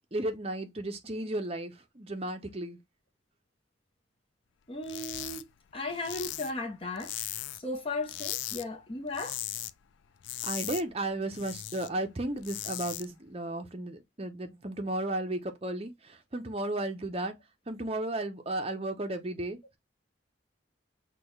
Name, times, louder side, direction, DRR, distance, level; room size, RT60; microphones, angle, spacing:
voice 1, 0.1-2.8 10.4-17.4 17.7-19.8, right 1 dB, 30° right, 0.7 m, -34 dB
voice 2, 4.7-5.4 5.7-7.1 7.6-9.4, left 2 dB, 30° left, 0.8 m, -35 dB
sound 1, 4.8-5.4 5.7-7.7 8.0-8.6 9.0-9.7 10.0-11.9 12.3-13.0, left 14 dB, 75° left, 0.3 m, -38 dB
6.0 x 2.3 x 3.1 m
head